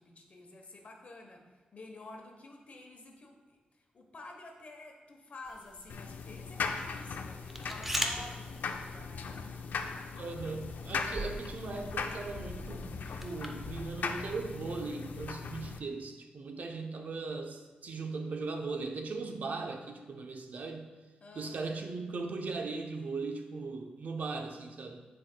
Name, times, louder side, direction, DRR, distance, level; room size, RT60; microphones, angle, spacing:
voice 1, 0.0-1.5 1.7-3.6 3.9-9.5 21.2-21.6, left 2 dB, 50° left, 2 dB, 1.0 m, -50 dB
sound 1, 5.5-13.6, equal, 5° right, 0.6 m, -42 dB
sound 2, 5.9-15.8, left 5 dB, 80° left, 0.4 m, -39 dB
voice 2, 10.1-20.9 21.3-25.0, right 4 dB, 65° right, 4 dB, 0.7 m, -38 dB
9.9 x 4.6 x 2.2 m, 1.3 s
wide cardioid pair, 95°, 3 cm